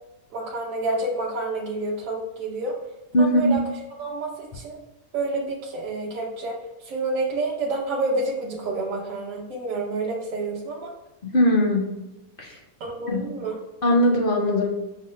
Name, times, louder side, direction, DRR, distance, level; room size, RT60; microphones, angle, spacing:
voice 1, 0.3-2.7 3.2-3.6 4.0-4.8 5.1-10.9 12.8-13.6, right 2 dB, 70° right, -3 dB, 1.1 m, -29 dB
voice 2, 3.1-3.6 11.2-11.9 12.4-12.6 13.1-13.3 13.8-14.7, left 1 dB, 55° left, 0 dB, 0.6 m, -20 dB
6.0 x 2.0 x 3.0 m, 1.0 s
omnidirectional pair, 1.5 m